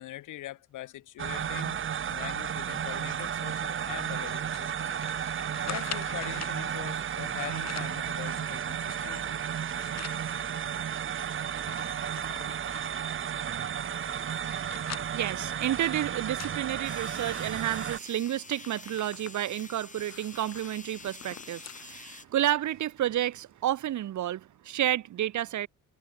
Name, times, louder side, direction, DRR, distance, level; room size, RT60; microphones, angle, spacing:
voice 1, 0.0-1.8 2.1-9.4, left 14 dB, 85° left, 3.1 m, -43 dB
sound 1, 1.2-18.0, right 8 dB, 40° right, 1.0 m, -33 dB
sound 2, 4.5-6.6 7.3-8.0 8.5-10.2 10.7-10.8 11.0-13.0 13.6-17.4 17.8-17.9 18.3-21.9 22.3-22.4 23.2-23.3, left 9 dB, 60° left, 5.9 m, -45 dB
voice 2, 14.6-25.7, right 12 dB, 75° right, 2.3 m, -31 dB
sound 3, 16.8-22.2, left 4 dB, 25° left, 1.8 m, -47 dB
cardioid pair, 90°, 30 cm